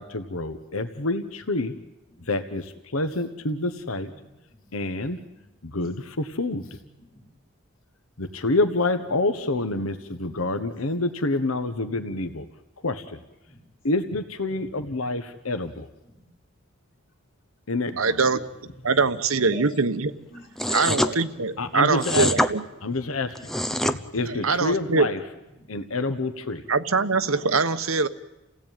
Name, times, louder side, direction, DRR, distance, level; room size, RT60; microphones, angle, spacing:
voice 1, 0.0-1.7 2.3-4.1 4.7-5.2 5.6-6.7 8.2-12.4 12.8-13.2 13.8-15.9 17.7-18.2 21.6-22.3 22.8-23.3 23.9-25.2 25.7-26.6, left 2 dB, 85° left, 8 dB, 1.3 m, -27 dB
voice 2, 4.1-4.7 5.3-5.8 6.4-6.5 7.0-7.2 9.1-9.2 13.4-13.6 15.4-15.5 16.0-16.2 18.8-18.9 19.4-21.1 21.3-21.8 23.4-23.5 25.5-25.7 26.6-26.7 26.9-27.1, left 1 dB, 45° left, 0 dB, 6.6 m, -46 dB
voice 3, 18.0-18.4 18.8-20.1 20.7-22.6 24.2-25.1 26.7-28.1, right 4 dB, 80° right, 12 dB, 1.2 m, -23 dB
sound 1, 20.6-21.1 22.0-22.5 23.3-24.0, equal, ahead, 0.8 m, -24 dB
29.0 x 17.0 x 9.1 m, 1.0 s
head